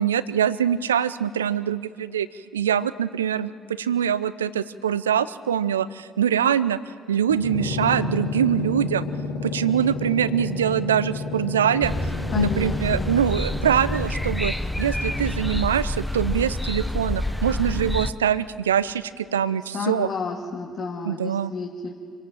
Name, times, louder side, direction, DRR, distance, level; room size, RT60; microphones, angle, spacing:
voice 1, 0.0-2.3 2.5-3.5 3.8-6.8 7.1-9.1 9.4-11.9 12.4-20.1 21.0-21.5, right 9 dB, 85° right, 17 dB, 0.5 m, -23 dB
sound 1, 7.3-14.6, left 4 dB, 80° left, 2.4 m, -31 dB
sound 2, 11.8-18.1, left 1 dB, 5° left, 1.0 m, -28 dB
voice 2, 12.3-13.1 19.7-21.9, left 6 dB, 50° left, 0 dB, 2.0 m, -30 dB
27.0 x 17.0 x 7.5 m, 2.1 s
figure-of-eight pair, 50°, 0 cm